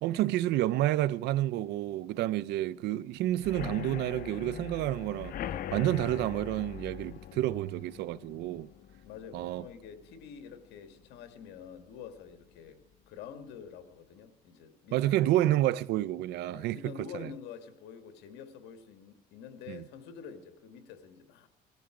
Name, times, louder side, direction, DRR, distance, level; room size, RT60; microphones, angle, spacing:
voice 1, 0.0-5.4 5.7-8.7 9.3-9.6 14.9-17.3 19.7-19.8, right 14 dB, 80° right, 0.6 m, -29 dB
sound 1, 3.4-11.0 11.4-11.8 12.1-12.2 12.5-12.6, left 10 dB, 60° left, 0.8 m, -42 dB
voice 2, 9.0-15.0 16.5-21.5, left 7 dB, 90° left, 2.0 m, -47 dB
19.5 x 14.0 x 4.9 m
cardioid pair, 110°, 17 cm